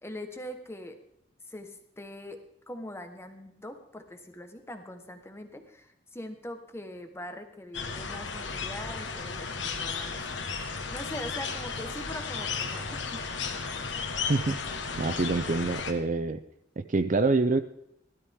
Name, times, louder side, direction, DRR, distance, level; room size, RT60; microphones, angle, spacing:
voice 1, 0.0-1.0 1.5-2.4 2.7-10.2 10.7-13.3, left 1 dB, 15° left, 6 dB, 1.4 m, -42 dB
sound 1, 7.7-15.9, left 5 dB, 80° left, 1.5 m, -34 dB
voice 2, 14.3-14.6 15.0-16.4 16.8-17.6, right 3 dB, 45° right, 11 dB, 0.6 m, -26 dB
16.0 x 12.5 x 3.7 m, 0.76 s
head